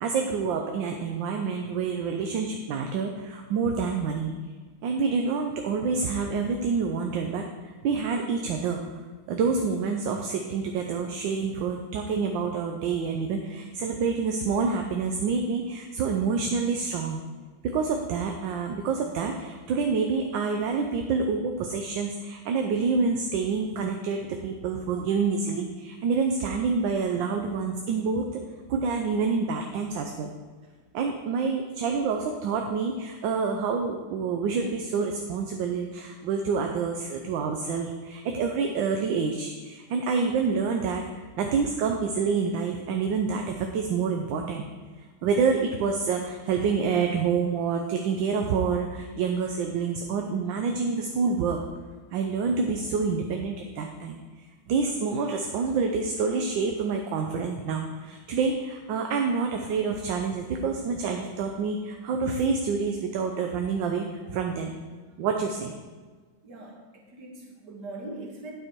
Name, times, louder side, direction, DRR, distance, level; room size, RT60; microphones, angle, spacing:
voice 1, 0.0-4.3 4.8-8.8 9.3-17.2 17.6-28.4 28.7-30.3 30.9-44.7 45.2-51.6 52.1-64.7 65.2-65.7, right 5 dB, 75° right, 3 dB, 1.4 m, -27 dB
voice 2, 66.4-68.5, right 2 dB, 60° right, -1 dB, 2.0 m, -41 dB
9.2 x 6.3 x 4.5 m, 1.4 s
omnidirectional pair, 2.1 m